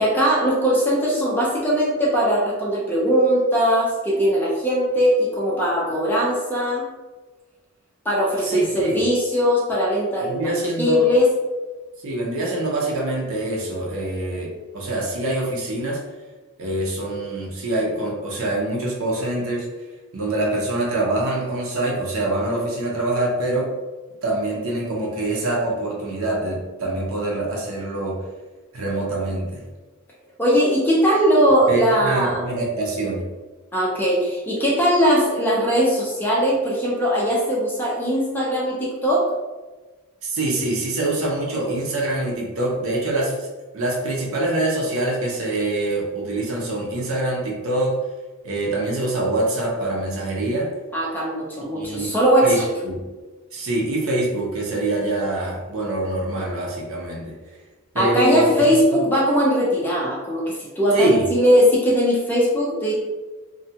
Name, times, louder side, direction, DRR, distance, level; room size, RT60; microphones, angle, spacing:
voice 1, 0.0-6.9 8.0-11.3 30.4-32.4 33.7-39.3 50.9-52.7 58.0-62.9, equal, 10° left, -5 dB, 0.5 m, -20 dB
voice 2, 8.4-9.0 10.3-11.1 12.0-16.0 16.6-19.7 20.1-23.7 24.2-28.2 28.7-29.6 31.7-33.3 40.2-43.5 43.7-48.0 48.4-50.7 51.7-52.1 52.4-53.1 53.5-57.4 57.9-58.5 58.9-59.0 60.9-61.2, right 2 dB, 65° right, -3 dB, 0.6 m, -24 dB
2.6 x 2.2 x 2.7 m, 1.2 s
head